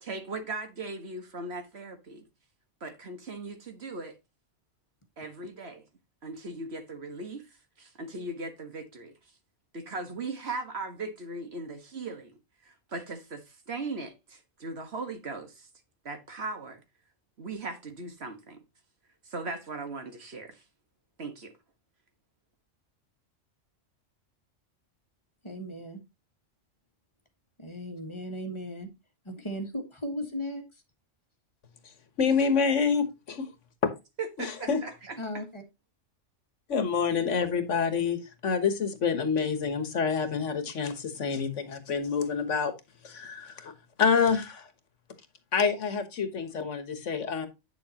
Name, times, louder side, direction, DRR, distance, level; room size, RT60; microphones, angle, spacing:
voice 1, 0.0-2.2 2.8-4.1 5.2-5.8 6.2-7.5 7.8-9.1 9.7-12.4 12.6-15.7 16.1-16.8 17.4-18.6 19.3-20.6 21.2-21.5 34.2-35.2, right 3 dB, 55° right, 1.7 m, -38 dB
voice 2, 25.4-26.0 27.6-28.9 29.2-30.8 35.2-35.6, equal, 25° left, 1.5 m, -36 dB
voice 3, 32.2-33.5 34.4-34.8 36.7-42.7 43.0-43.7 44.0-44.7 45.5-47.5, left 6 dB, 75° left, 1.6 m, -27 dB
9.1 x 6.9 x 2.8 m
omnidirectional pair, 1.3 m